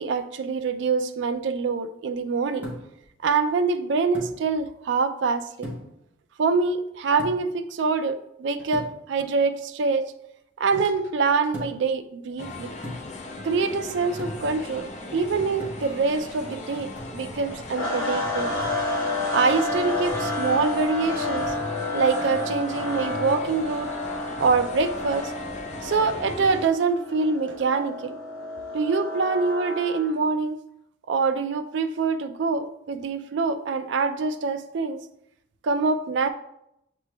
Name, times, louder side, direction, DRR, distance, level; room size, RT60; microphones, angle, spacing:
voice 1, 0.0-2.7 3.2-5.7 6.4-10.1 10.6-12.7 13.4-18.6 19.3-21.5 21.9-23.9 24.4-25.3 25.8-28.2 28.7-30.6 31.1-35.0 35.6-36.3, right 4 dB, 65° right, 9 dB, 0.3 m, -25 dB
sound 1, 2.6-3.1 4.1-4.4 5.6-6.0 7.2-7.6 8.7-9.0 11.5-11.9 12.8-13.2 14.2-14.5 15.6-16.0 17.0-17.2 18.6-18.9 20.1-20.4 21.4-21.7, left 1 dB, 10° right, 0.9 m, -38 dB
sound 2, 12.4-26.7, left 2 dB, 35° left, 0.4 m, -38 dB
sound 3, 17.7-30.1, left 2 dB, 90° left, 1.0 m, -30 dB
7.3 x 3.1 x 2.3 m, 0.80 s
head